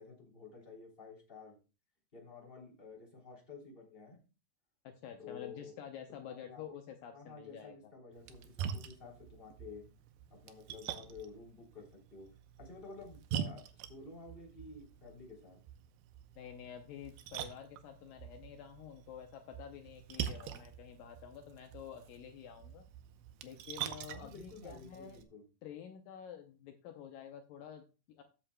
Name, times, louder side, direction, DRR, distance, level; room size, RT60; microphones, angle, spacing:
voice 1, 0.0-1.6 2.1-4.2 5.2-5.7 6.1-6.6 7.1-9.8 10.3-11.9 12.1-12.3 12.6-15.6 20.1-20.6 24.1-25.4, left 4 dB, 15° left, -1 dB, 2.7 m, -51 dB
voice 2, 4.8-7.8 16.4-22.8 23.4-25.2 25.6-28.2, left 9 dB, 75° left, 5 dB, 2.2 m, -49 dB
Splash splatter, 8.1-25.2, right 9 dB, 80° right, 2.7 m, -45 dB
13.5 x 8.1 x 2.2 m, 0.33 s
omnidirectional pair, 4.6 m